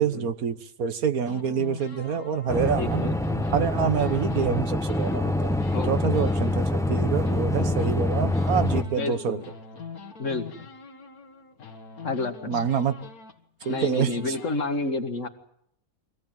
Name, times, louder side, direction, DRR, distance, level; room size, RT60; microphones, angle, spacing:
voice 1, 0.0-3.0 3.5-9.4 12.5-13.0 13.7-14.1, right 7 dB, 80° right, 10 dB, 1.7 m, -27 dB
sound 1, 1.2-4.6 4.9-14.6, left 5 dB, 85° left, 2.1 m, -43 dB
sound 2, 2.5-8.8, left 1 dB, 5° left, 0.9 m, -25 dB
voice 2, 2.8-3.2 5.7-6.2 9.0-9.4 10.2-10.7 12.0-12.6 13.7-15.3, left 2 dB, 60° left, 6 dB, 2.1 m, -30 dB
24.0 x 17.0 x 9.1 m, 0.72 s
omnidirectional pair, 1.5 m